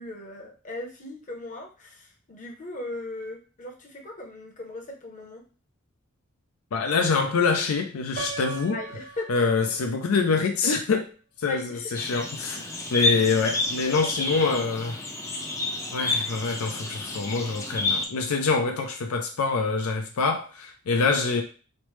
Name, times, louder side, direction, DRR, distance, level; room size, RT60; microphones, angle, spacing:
voice 1, 0.0-5.4 8.7-9.3 11.5-11.9 13.9-14.1 14.4-14.7, left 2 dB, 35° left, 0.7 m, -38 dB
voice 2, 6.7-8.8 9.3-11.1 11.4-14.9 15.9-21.4, left 4 dB, 85° left, 0.5 m, -25 dB
Piano, 8.2-10.1, right 4 dB, 45° right, 0.5 m, -38 dB
sound 1, 12.0-18.1, left 2 dB, 15° left, 0.4 m, -29 dB
3.1 x 2.1 x 3.1 m
head